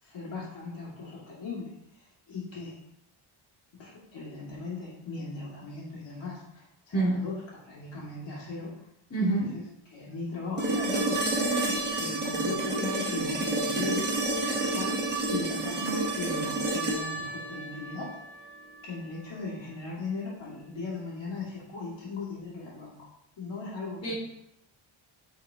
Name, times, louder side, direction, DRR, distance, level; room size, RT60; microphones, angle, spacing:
voice 1, 0.0-2.8 3.8-8.7 9.3-9.6 9.9-14.0 14.7-15.0 15.3-18.1 18.8-22.9 23.4-24.1, left 3 dB, 60° left, -7 dB, 2.3 m, -38 dB
voice 2, 9.1-9.5 24.0-24.1, right 2 dB, 30° left, -8 dB, 2.3 m, -26 dB
sound 1, 10.6-18.6 20.8-20.9, right 2 dB, 20° right, 1.5 m, -30 dB
8.5 x 4.1 x 2.8 m, 0.79 s
cardioid pair, 90°, 50 cm